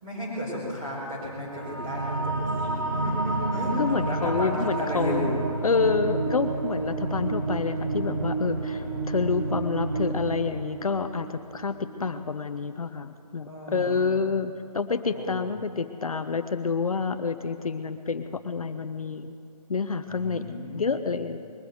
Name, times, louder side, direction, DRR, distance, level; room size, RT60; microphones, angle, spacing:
voice 1, 0.0-5.4 13.4-14.1 15.1-15.4 20.1-21.2, equal, 15° right, -7 dB, 4.6 m, -33 dB
sound 1, 1.5-12.4, right 3 dB, 30° right, 1.4 m, -30 dB
voice 2, 3.8-5.3 5.6-19.3 19.7-20.4 20.7-21.4, left 5 dB, 60° left, 9 dB, 0.7 m, -28 dB
21.0 x 8.2 x 7.9 m, 2.4 s
hypercardioid pair, 170°, 20 cm